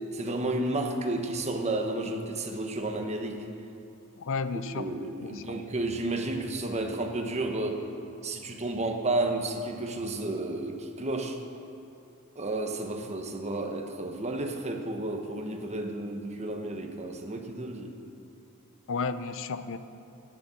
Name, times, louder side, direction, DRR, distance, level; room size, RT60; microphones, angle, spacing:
voice 1, 0.1-3.4 4.8-7.8 8.2-11.4 12.3-17.9, right 2 dB, 30° right, 3 dB, 1.1 m, -32 dB
voice 2, 4.2-4.9 5.2-5.5 18.9-19.8, left 4 dB, 60° left, 12 dB, 0.6 m, -32 dB
11.5 x 9.8 x 7.1 m, 2.6 s
head